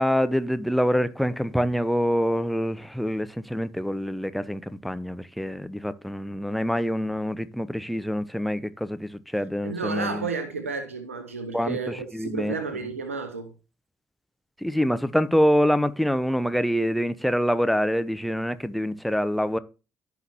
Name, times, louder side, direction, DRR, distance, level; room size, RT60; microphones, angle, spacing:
voice 1, 0.0-10.3 11.5-12.6 12.8-12.9 14.6-19.6, equal, ahead, 0.9 m, -25 dB
voice 2, 9.6-13.5, right 4 dB, 85° right, 0.8 m, -32 dB
15.0 x 6.0 x 3.0 m
figure-of-eight pair, 40°, 7 cm